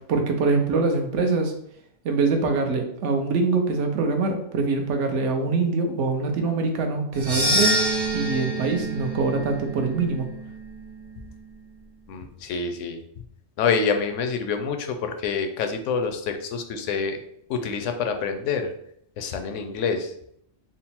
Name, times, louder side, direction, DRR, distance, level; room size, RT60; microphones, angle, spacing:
voice 1, 0.1-1.5 2.0-7.8 8.1-10.3, right 4 dB, 70° right, 4 dB, 1.0 m, -24 dB
sound 1, 7.1-11.5, right 1 dB, 20° right, 0.6 m, -27 dB
voice 2, 12.1-13.0 13.6-17.2 17.5-18.7 19.2-20.1, left 5 dB, 75° left, 6 dB, 0.9 m, -27 dB
3.8 x 2.0 x 4.2 m, 0.71 s
omnidirectional pair, 1.3 m